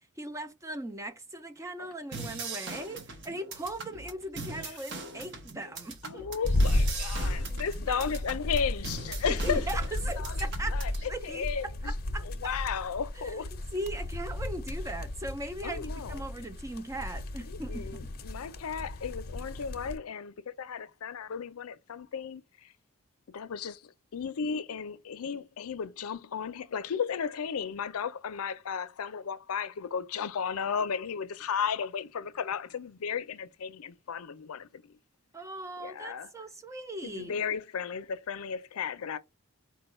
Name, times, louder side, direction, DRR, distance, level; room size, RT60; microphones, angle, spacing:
voice 1, 0.2-6.3 7.9-8.0 9.3-10.8 11.1-12.3 13.1-18.1 35.3-37.3, right 1 dB, 15° right, 0.4 m, -39 dB
sound 1, 2.1-11.1, right 3 dB, 55° right, 0.8 m, -41 dB
voice 2, 6.0-9.6 10.2-11.9 12.2-13.5 15.6-16.2 17.5-22.7 23.3-23.8 24.1-35.0 35.8-36.3 37.0-39.2, left 6 dB, 90° left, 0.5 m, -34 dB
sound 2, 6.4-20.0, left 1 dB, 45° left, 0.6 m, -33 dB
4.6 x 2.3 x 4.1 m
head